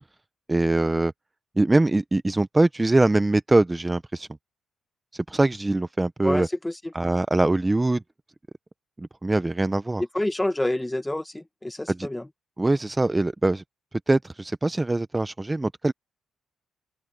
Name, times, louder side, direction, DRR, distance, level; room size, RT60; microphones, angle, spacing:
voice 1, 0.5-1.1 1.6-4.3 5.1-6.5 6.9-8.0 9.0-10.0 11.9-12.1 12.6-13.6 13.9-15.9, right 2 dB, 15° right, 0.6 m, -23 dB
voice 2, 6.2-6.9 10.1-12.3, left 1 dB, 10° left, 1.5 m, -28 dB
open air
cardioid pair, 90°, 0 cm